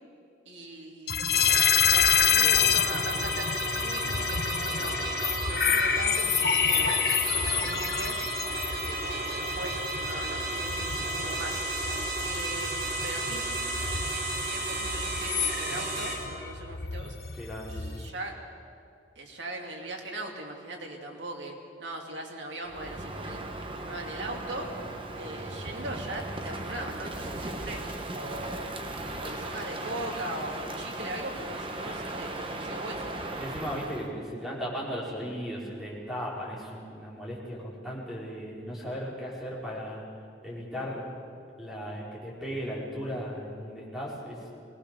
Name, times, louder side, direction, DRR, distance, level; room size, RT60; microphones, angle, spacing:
voice 1, 0.5-1.4 1.8-5.0 5.4-8.2 8.8-11.6 12.2-12.7 13.0-13.4 14.2-17.1 17.7-18.4 19.1-21.5 21.8-23.4 23.8-24.7 25.1-27.8 28.1-28.7 29.2-33.1, right 1 dB, 80° right, 1 dB, 2.7 m, -39 dB
sound 1, 1.1-18.1, left 7 dB, 55° left, 1.0 m, -28 dB
sound 2, 1.3-16.1, right 2 dB, 55° right, 5.6 m, -33 dB
voice 2, 17.3-17.7 33.4-40.0 40.4-41.0 41.6-44.4, equal, ahead, -6 dB, 4.8 m, -36 dB
Crow, 22.7-34.1, right 2 dB, 30° right, 1.2 m, -37 dB
21.5 x 18.5 x 6.8 m, 2.4 s
head